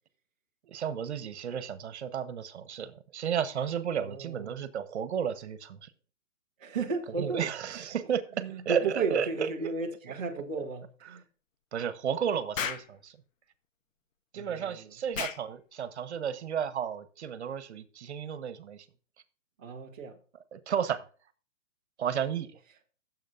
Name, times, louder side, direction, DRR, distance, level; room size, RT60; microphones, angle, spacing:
voice 1, 0.7-5.9 7.2-9.7 11.7-13.2 14.3-18.9 20.5-21.0 22.0-22.6, right 8 dB, 60° right, 14 dB, 1.2 m, -33 dB
voice 2, 4.0-4.6 6.6-7.9 8.4-11.2 14.3-14.9 19.6-20.2, right 4 dB, 10° right, -4 dB, 0.4 m, -34 dB
Explosion, 12.6-12.9 15.1-15.4, left 7 dB, 80° left, 1.1 m, -33 dB
16.0 x 7.5 x 2.5 m, 0.40 s
hypercardioid pair, 160°, 38 cm